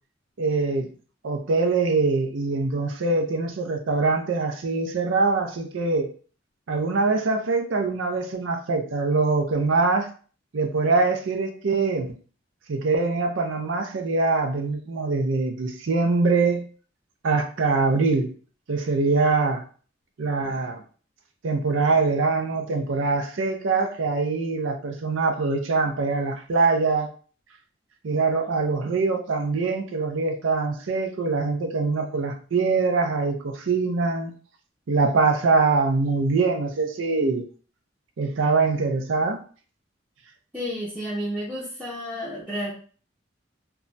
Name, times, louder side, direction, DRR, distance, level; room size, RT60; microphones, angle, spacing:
voice 1, 0.4-0.9 1.2-6.1 6.7-10.1 10.5-12.2 12.7-16.6 17.2-18.3 18.7-19.6 20.2-20.8 21.4-27.1 28.0-34.3 34.9-37.5 38.2-39.4, right 3 dB, 75° right, 0.5 m, -23 dB
voice 2, 40.5-42.7, equal, 5° right, 0.5 m, -31 dB
2.3 x 2.1 x 3.9 m
head